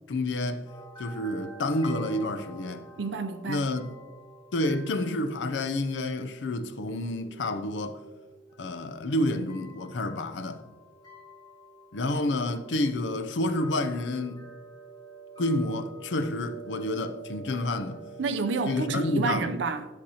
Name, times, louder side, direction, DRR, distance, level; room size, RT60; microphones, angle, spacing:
voice 1, 0.1-0.6 1.0-2.9 3.5-3.9 4.5-8.0 8.6-10.6 11.9-14.4 15.4-18.0 18.7-19.5, left 1 dB, 80° left, 0.6 m, -29 dB
sound 1, 0.6-19.5, right 3 dB, 25° left, 2.0 m, -47 dB
voice 2, 3.0-3.6 18.2-19.9, right 4 dB, 85° right, 0.6 m, -29 dB
10.5 x 6.4 x 2.8 m
head